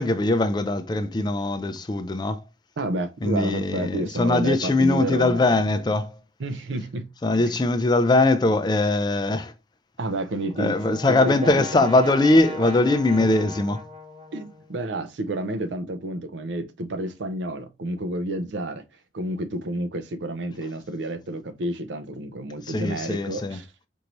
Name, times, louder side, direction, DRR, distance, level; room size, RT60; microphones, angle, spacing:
voice 1, 0.0-2.4 3.2-6.2 7.2-9.5 10.6-13.8 22.7-23.6, left 2 dB, 25° left, 0.4 m, -21 dB
voice 2, 2.8-5.7 6.4-7.6 10.0-11.9 13.2-13.3 14.3-18.8 19.1-23.7, right 1 dB, 85° right, 0.6 m, -30 dB
Brass instrument, 10.1-14.9, left 3 dB, 35° right, 0.7 m, -40 dB
4.5 x 2.6 x 2.9 m
head